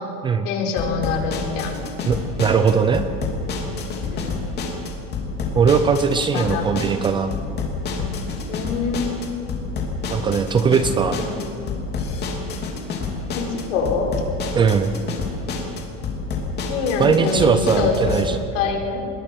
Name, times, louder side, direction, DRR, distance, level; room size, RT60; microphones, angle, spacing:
voice 1, 0.4-1.8 4.1-4.5 6.3-6.7 8.5-9.2 11.1-11.7 13.3-14.1 16.7-17.9 18.5-19.1, left 5 dB, 80° left, 1 dB, 5.0 m, -25 dB
sound 1, 0.8-18.2, left 4 dB, 25° left, 2.9 m, -28 dB
voice 2, 2.0-3.1 5.6-7.3 10.1-11.2 14.5-14.9 17.0-18.4, right 6 dB, 15° right, 9 dB, 0.4 m, -19 dB
26.5 x 21.0 x 6.1 m, 2.5 s
cardioid pair, 180°, 37 cm